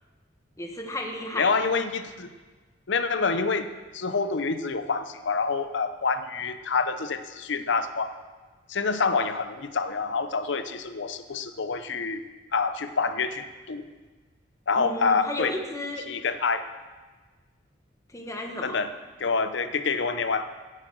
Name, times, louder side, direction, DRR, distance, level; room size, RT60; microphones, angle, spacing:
voice 1, 0.6-1.5 14.8-16.0 18.1-18.8, left 1 dB, 15° left, 2 dB, 1.5 m, -34 dB
voice 2, 1.3-2.3 2.9-8.1 8.7-12.2 12.5-13.9 14.7-15.6 16.0-16.7 18.6-18.9 19.2-20.5, left 4 dB, 70° left, 11 dB, 0.8 m, -27 dB
15.5 x 7.4 x 6.3 m, 1.3 s
head